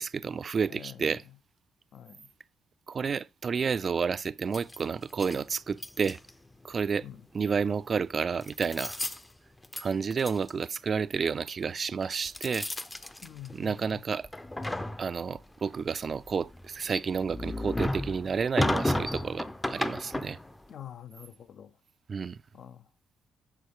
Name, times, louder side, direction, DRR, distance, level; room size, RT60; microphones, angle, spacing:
voice 1, 0.0-1.2 2.9-6.2 6.6-7.1 7.3-9.0 9.8-12.7 13.5-14.3 15.0-20.4 22.1-22.4, right 6 dB, 45° right, 0.4 m, -30 dB
voice 2, 0.7-1.4 1.9-2.3 7.0-7.3 13.2-14.0 20.7-21.8 22.5-22.9, left 10 dB, 65° left, 0.8 m, -46 dB
sound 1, 4.5-5.4 5.8-6.5 7.7-7.9 8.4-9.3 9.6-9.8 10.1-10.5 12.0-13.9 14.2-15.4 16.0-20.6, left 1 dB, 10° left, 0.6 m, -33 dB
8.2 x 3.7 x 6.5 m
cardioid pair, 90°, 0 cm